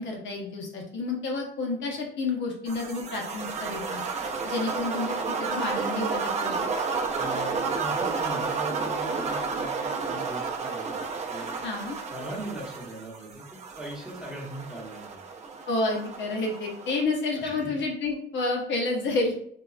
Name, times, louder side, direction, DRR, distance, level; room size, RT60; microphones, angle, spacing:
voice 1, 0.0-4.0 4.4-6.7 11.6-12.0 15.7-19.4, left 3 dB, 80° left, 0 dB, 0.8 m, -30 dB
sound 1, 2.7-17.0, right 4 dB, 35° right, 0.4 m, -31 dB
voice 2, 7.2-11.0 11.3-11.6 12.1-15.2 17.4-17.7, right 1 dB, 5° right, -4 dB, 1.0 m, -39 dB
3.9 x 2.2 x 2.3 m, 0.66 s
cardioid pair, 125°, 19 cm